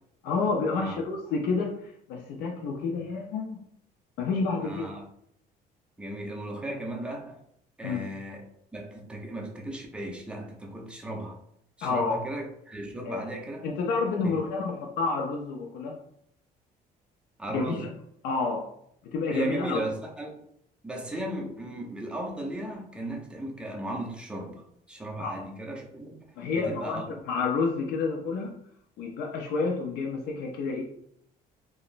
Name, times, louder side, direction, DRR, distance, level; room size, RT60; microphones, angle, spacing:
voice 1, 0.2-3.6 4.2-4.9 7.8-8.0 11.8-12.2 13.1-13.3 13.6-16.0 17.5-17.9 18.2-18.7 19.0-19.8 25.2-25.4 26.4-28.6 29.0-30.8, left 4 dB, 75° left, 1 dB, 0.4 m, -29 dB
voice 2, 4.6-5.0 6.0-7.4 7.8-11.4 11.8-13.7 14.2-14.4 17.4-17.9 19.3-20.3 20.8-26.3 26.6-27.1, right 1 dB, 5° right, 0 dB, 0.5 m, -36 dB
2.9 x 2.0 x 2.5 m, 0.70 s
cardioid pair, 110°, 17 cm